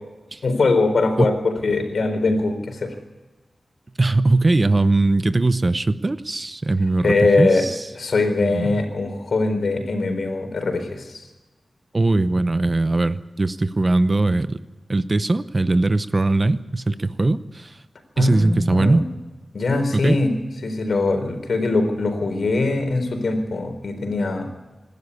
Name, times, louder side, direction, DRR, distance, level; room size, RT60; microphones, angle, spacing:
voice 1, 0.4-2.9 7.0-7.6 8.0-11.3 18.2-19.1 19.5-20.3 20.6-24.5, left 3 dB, 75° left, 6 dB, 4.1 m, -22 dB
voice 2, 4.0-7.7 8.5-8.8 11.9-14.6 14.9-17.8 18.2-19.0 19.9-20.2, right 2 dB, 35° right, 13 dB, 0.8 m, -20 dB
26.0 x 12.0 x 9.7 m, 1.1 s
wide cardioid pair, 100°, 0 cm